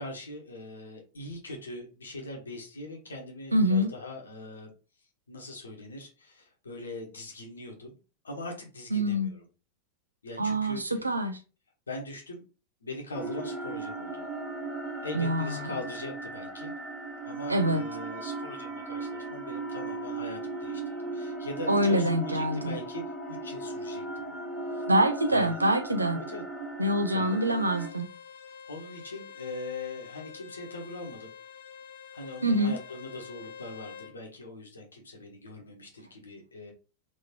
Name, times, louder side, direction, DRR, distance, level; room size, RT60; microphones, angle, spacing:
voice 1, 0.0-4.7 5.3-8.0 8.2-9.4 10.2-11.0 11.9-12.4 12.8-14.3 15.0-16.7 17.2-23.0 23.3-24.3 24.6-24.8 25.3-25.6 26.1-26.4 27.1-27.4 28.6-31.3 32.1-36.7, left 2 dB, 75° left, 1.1 m, -41 dB
voice 2, 3.5-3.9 8.9-9.3 10.4-11.4 15.1-15.7 17.5-17.8 21.7-22.7 24.9-26.2 26.8-28.1 32.4-32.8, right 1 dB, 80° right, 0.6 m, -25 dB
sound 1, 13.1-27.9, right 2 dB, 15° right, 1.2 m, -37 dB
Bowed string instrument, 27.2-34.2, left 7 dB, 55° left, 0.6 m, -47 dB
3.6 x 3.0 x 2.9 m
figure-of-eight pair, 90°, 0 cm